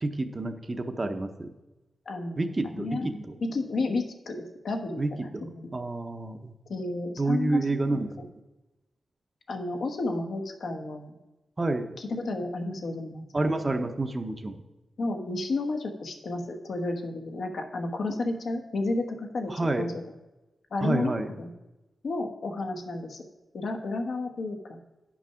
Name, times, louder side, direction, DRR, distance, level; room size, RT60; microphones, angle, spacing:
voice 1, 0.0-1.5 2.4-3.4 5.0-5.4 5.7-6.5 7.2-8.1 11.6-12.0 13.3-14.6 19.5-19.9 20.8-21.3, right 2 dB, 25° right, 6 dB, 0.7 m, -29 dB
voice 2, 2.1-5.7 6.7-7.6 7.9-8.0 9.5-11.1 12.0-13.5 15.0-19.9 20.7-21.5 22.0-23.2 23.5-24.8, left 2 dB, 70° left, 4 dB, 1.1 m, -32 dB
9.9 x 6.2 x 5.7 m, 1.0 s
wide cardioid pair, 115°, 0 cm